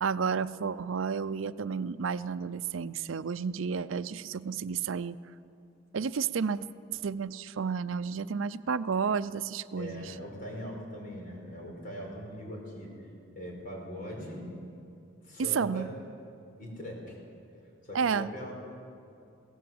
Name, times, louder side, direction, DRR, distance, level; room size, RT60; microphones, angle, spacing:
voice 1, 0.0-5.2 5.9-6.6 6.9-10.0 15.4-15.9 17.9-18.3, right 6 dB, 85° right, 15 dB, 0.5 m, -31 dB
voice 2, 9.8-13.0 13.3-14.6 15.2-15.9 16.6-17.2 17.8-18.5, equal, 45° left, 0 dB, 5.1 m, -41 dB
21.5 x 16.5 x 7.8 m, 2.5 s
head